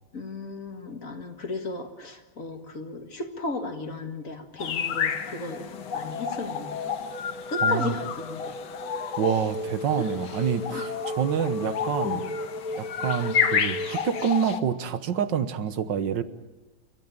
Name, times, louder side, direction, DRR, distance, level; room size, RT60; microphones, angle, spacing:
voice 1, 0.1-5.6 5.9-6.7 7.5-8.5 10.0-10.1 10.7-10.9 12.0-12.2, left 3 dB, 45° left, 6 dB, 2.2 m, -35 dB
sound 1, 4.6-14.6, left 7 dB, 65° left, 1.7 m, -30 dB
sound 2, 4.7-14.6, left 1 dB, 25° left, 1.3 m, -36 dB
voice 2, 7.6-7.9 9.2-12.2 12.8-16.2, right 8 dB, 70° right, 13 dB, 1.7 m, -27 dB
29.5 x 13.5 x 9.0 m, 1.1 s
omnidirectional pair, 2.1 m